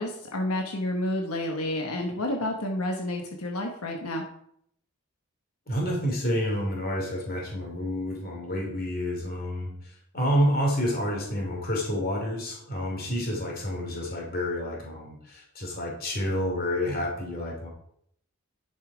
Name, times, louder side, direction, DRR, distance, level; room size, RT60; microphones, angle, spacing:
voice 1, 0.0-4.3, left 1 dB, 85° left, 2 dB, 1.2 m, -30 dB
voice 2, 5.7-9.7 10.1-17.7, equal, 40° left, -1 dB, 2.7 m, -29 dB
10.5 x 5.5 x 5.0 m, 0.69 s
head